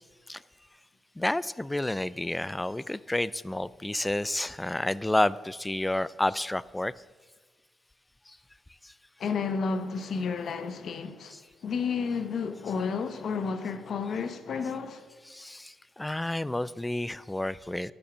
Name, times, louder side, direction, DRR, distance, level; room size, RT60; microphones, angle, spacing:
voice 1, 1.2-6.9 8.3-8.4 8.8-8.9 15.3-17.9, left 1 dB, 10° left, 0.3 m, -30 dB
voice 2, 9.2-11.3 11.6-15.0, left 5 dB, 60° left, 0.9 m, -31 dB
12.0 x 7.1 x 6.2 m
cardioid pair, 90°, 0 cm